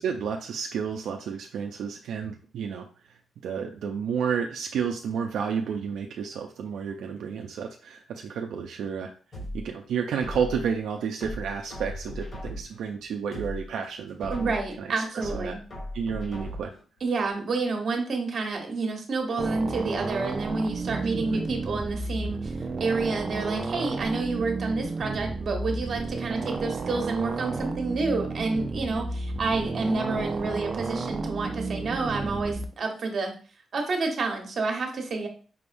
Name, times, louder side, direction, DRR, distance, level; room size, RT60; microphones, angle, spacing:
voice 1, 0.0-9.1 9.5-15.6 15.9-16.7 20.9-21.4, right 7 dB, 85° right, 3 dB, 0.4 m, -31 dB
sound 1, 9.3-10.7 11.2-12.8 13.2-14.7 15.2-16.8 17.2-17.3, left 1 dB, 40° left, 2.4 m, -37 dB
voice 2, 14.3-15.6 17.0-33.3 33.7-35.3, right 3 dB, 50° right, 3 dB, 1.2 m, -29 dB
sound 2, 19.4-32.6, right 3 dB, 35° right, 0.5 m, -32 dB
5.5 x 3.4 x 2.6 m, 0.40 s
cardioid pair, 120°, 0 cm